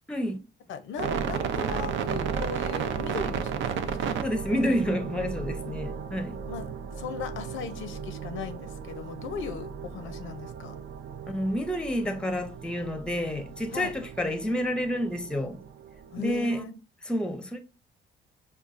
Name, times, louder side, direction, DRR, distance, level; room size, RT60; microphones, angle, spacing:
voice 1, 0.7-4.2 6.3-6.7 7.0-10.8 13.7-13.9 16.1-16.8, left 6 dB, 80° left, 0.6 m, -38 dB
sound 1, 1.0-16.6, right 7 dB, 75° right, 0.5 m, -34 dB
voice 2, 4.2-6.4 11.3-15.6 16.2-16.6 17.1-17.6, equal, 5° left, 0.6 m, -29 dB
5.2 x 2.3 x 2.4 m
cardioid pair, 90°, 20 cm